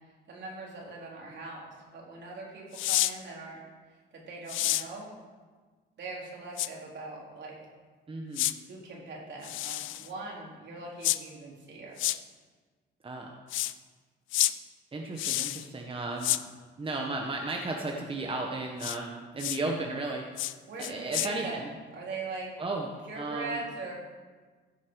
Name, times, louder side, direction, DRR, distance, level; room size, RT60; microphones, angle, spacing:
voice 1, 0.3-3.6 4.1-5.1 6.0-7.6 8.6-12.0 20.7-21.6 21.9-22.5 23.1-23.9, right 3 dB, 65° right, -3 dB, 3.8 m, -41 dB
sound 1, 2.7-3.1 4.5-4.8 6.6-6.7 8.3-8.5 9.4-10.1 11.0-11.2 12.0-12.2 13.5-13.7 14.3-14.5 15.2-15.7 16.2-16.4 18.8-19.0 19.4-19.6 20.4-20.5 20.8-21.3, left 15 dB, 80° left, 0.5 m, -29 dB
voice 2, 8.1-8.5 13.0-13.3 14.9-16.4 16.8-20.2 20.9-21.7 22.6-22.9 23.1-23.6, right 2 dB, 25° right, 1 dB, 1.3 m, -34 dB
15.0 x 7.2 x 4.8 m, 1.4 s
cardioid pair, 90°, 20 cm